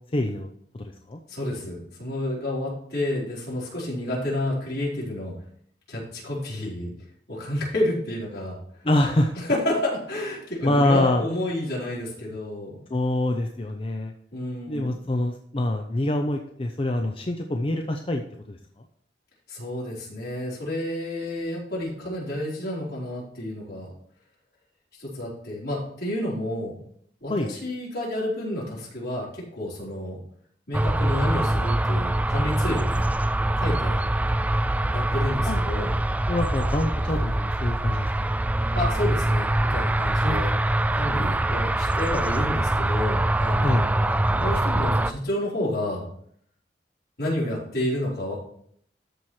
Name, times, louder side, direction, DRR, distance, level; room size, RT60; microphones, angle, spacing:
voice 1, 0.1-0.5 0.7-1.2 8.8-9.3 10.6-11.2 12.9-14.1 14.7-18.6 27.3-27.5 35.5-35.6 36.3-38.1 40.2-40.4 41.1-41.5 43.6-43.9, left 1 dB, 30° left, 4 dB, 0.6 m, -25 dB
voice 2, 1.3-5.3 5.9-6.9 7.3-8.5 9.3-12.8 14.3-14.9 19.5-23.9 25.0-26.8 27.2-30.2 30.7-33.1 33.6-33.9 34.9-35.9 38.7-40.5 40.9-46.0 47.2-48.4, left 1 dB, 65° left, -6 dB, 4.5 m, -30 dB
sound 1, 30.7-45.1, right 1 dB, 10° right, 0.3 m, -24 dB
13.5 x 4.8 x 4.4 m, 0.65 s
head